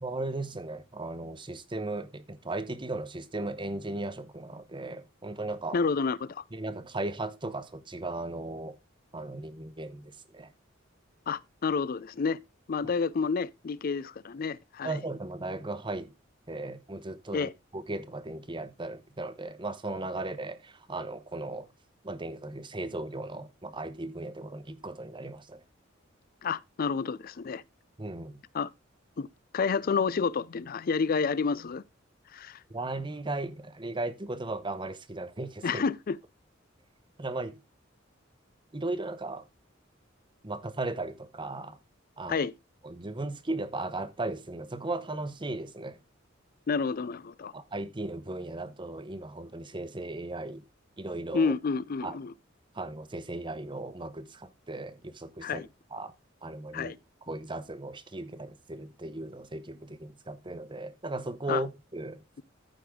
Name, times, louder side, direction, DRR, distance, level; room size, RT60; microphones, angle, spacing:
voice 1, 0.0-5.8 6.5-8.7 9.1-10.5 14.8-16.1 16.5-21.7 22.0-25.6 28.0-28.4 32.7-35.8 37.2-37.6 38.7-39.4 40.4-41.8 42.2-42.5 42.8-46.0 47.5-50.6 51.0-51.5 52.0-52.2 52.7-55.6 55.9-56.1 56.4-56.9 57.3-62.2, right 2 dB, 25° right, 0.9 m, -36 dB
voice 2, 5.7-6.4 11.3-12.4 12.7-14.9 17.3-17.5 26.4-27.6 28.5-28.7 29.2-29.3 29.5-31.8 32.3-32.6 35.6-36.2 42.3-42.5 46.7-47.5 51.3-52.3 55.4-55.7 56.7-57.0 61.5-61.6, left 5 dB, 50° left, 0.4 m, -29 dB
14.0 x 5.1 x 3.6 m
head